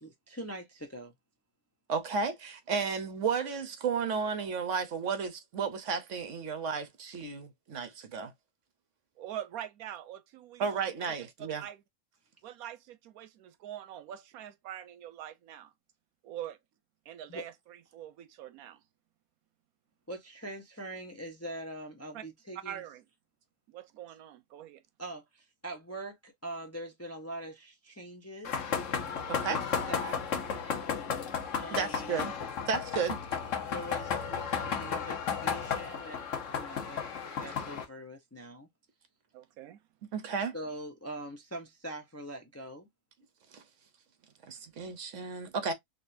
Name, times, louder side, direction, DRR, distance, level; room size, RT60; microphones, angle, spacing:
voice 1, 0.0-1.1 17.3-17.4 20.1-22.8 25.0-28.6 29.5-29.6 29.9-30.5 31.6-32.1 33.7-36.2 36.5-37.1 37.4-38.7 40.5-42.9, right 1 dB, 20° left, 0.5 m, -43 dB
voice 2, 1.9-8.3 10.6-11.6 29.3-29.6 31.7-32.3 32.7-33.2 40.1-40.5 43.5-43.6 44.5-45.7, right 5 dB, 60° right, 1.1 m, -33 dB
voice 3, 9.2-11.1 11.6-11.8 12.4-15.7 16.2-16.6 17.1-18.8 22.1-22.2 22.6-23.0 23.7-24.8 39.3-39.8, right 11 dB, 85° right, 1.1 m, -44 dB
sound 1, 28.4-37.8, left 6 dB, 60° left, 1.2 m, -34 dB
3.9 x 3.0 x 2.6 m
omnidirectional pair, 1.5 m